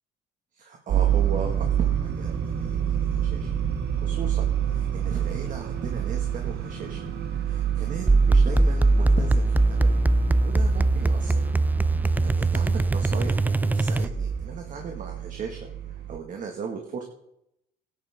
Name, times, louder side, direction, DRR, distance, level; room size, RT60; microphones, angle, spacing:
voice 1, 0.5-3.5 4.0-7.0 7.4-10.1 10.4-11.4 12.0-15.7 16.1-17.0, right 5 dB, 50° right, 3 dB, 1.9 m, -37 dB
sound 1, 0.9-16.2, right 10 dB, 70° right, 1.7 m, -28 dB
sound 2, 8.1-14.4, right 2 dB, 10° right, 0.4 m, -21 dB
16.5 x 10.5 x 3.7 m, 0.78 s
cardioid pair, 110°, 17 cm